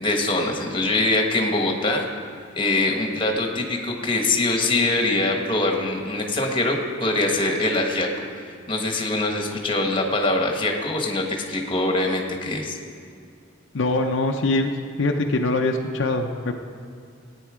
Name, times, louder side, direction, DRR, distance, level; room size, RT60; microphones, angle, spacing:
voice 1, 0.0-2.1 2.5-8.1 8.3-12.8, left 2 dB, 25° left, 2 dB, 1.3 m, -23 dB
voice 2, 13.7-14.7 15.0-16.5, left 2 dB, 65° left, 3 dB, 0.6 m, -23 dB
14.5 x 9.1 x 4.9 m, 2.2 s
head